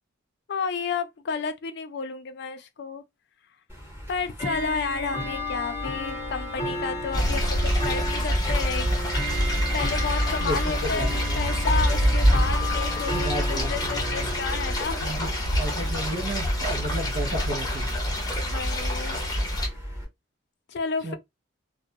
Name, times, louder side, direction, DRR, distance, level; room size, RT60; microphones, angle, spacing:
voice 1, 0.5-3.0 4.1-7.6 7.8-8.9 9.7-11.1 11.4-15.2 18.4-19.2 20.7-21.2, left 5 dB, 55° left, 0.3 m, -31 dB
Bell / Tick-tock, 3.7-20.0, left 1 dB, 10° right, 1.0 m, -34 dB
sound 1, 7.1-19.7, equal, 20° left, 0.6 m, -26 dB
voice 2, 10.4-11.4 13.1-14.4 15.0-15.3 15.6-18.0 21.0-21.2, right 1 dB, 60° right, 0.6 m, -33 dB
2.2 x 2.1 x 2.7 m
head